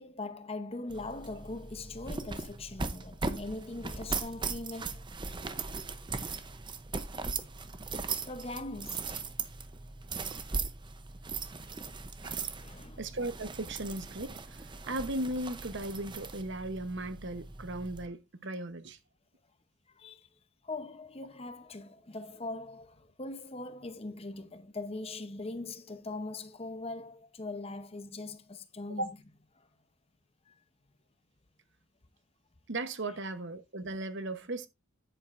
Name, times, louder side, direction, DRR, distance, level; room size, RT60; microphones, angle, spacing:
voice 1, 0.0-5.0 8.3-9.2 12.3-13.0 19.9-20.3 20.6-29.1 29.5-29.7 30.5-30.6, left 2 dB, 25° left, 0.8 m, -41 dB
sound 1, 0.9-18.1, right 4 dB, 20° right, 0.7 m, -39 dB
voice 2, 13.0-19.0 29.0-29.1 32.7-34.7, right 2 dB, 55° right, 1.0 m, -37 dB
10.0 x 9.1 x 2.5 m
head